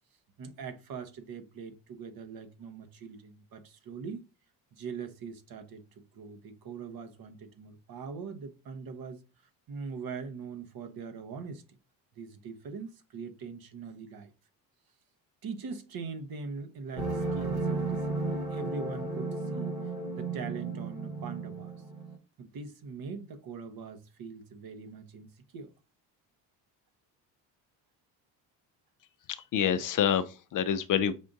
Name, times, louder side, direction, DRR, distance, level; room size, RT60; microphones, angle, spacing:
voice 1, 0.4-4.2 4.7-5.8 6.1-9.2 9.7-11.6 12.1-14.3 15.4-19.7 20.1-21.8 22.4-25.3 25.5-25.7, right 5 dB, 50° right, 1.0 m, -42 dB
sound 1, 17.0-22.2, right 3 dB, 90° right, 1.5 m, -34 dB
voice 2, 29.3-31.1, left 8 dB, 45° left, 0.5 m, -27 dB
5.5 x 2.5 x 3.8 m
supercardioid pair, 80°, 44 cm